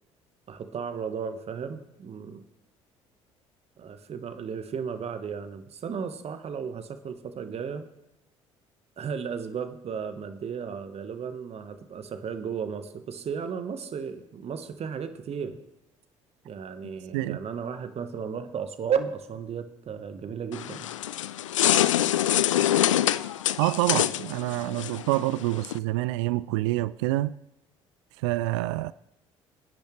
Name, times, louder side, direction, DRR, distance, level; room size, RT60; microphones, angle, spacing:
voice 1, 0.5-2.4 3.8-7.9 9.0-15.6 16.4-20.9, right 6 dB, 40° right, 1.3 m, -34 dB
sound 1, 20.5-25.8, left 12 dB, 80° left, 0.4 m, -25 dB
voice 2, 23.6-27.3 28.2-28.9, right 17 dB, 70° right, 0.4 m, -27 dB
26.0 x 10.5 x 3.3 m
figure-of-eight pair, 55°, 16 cm